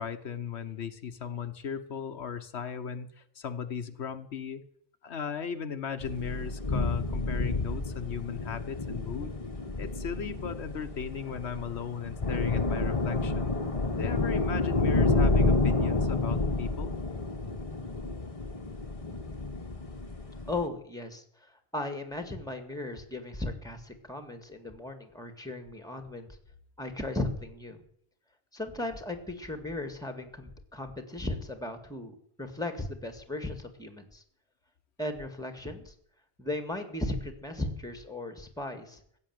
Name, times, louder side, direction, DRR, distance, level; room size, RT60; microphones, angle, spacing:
voice 1, 0.0-4.6 5.0-9.4 9.8-13.6 14.0-17.0, left 7 dB, 85° left, 8 dB, 1.3 m, -37 dB
sound 1, 6.0-20.6, left 3 dB, 35° left, 1.2 m, -30 dB
voice 2, 20.5-26.4 26.8-27.8 28.5-34.2 35.0-35.9 36.4-39.0, left 2 dB, 5° left, 7 dB, 1.9 m, -36 dB
15.5 x 8.2 x 9.3 m, 0.68 s
omnidirectional pair, 1.1 m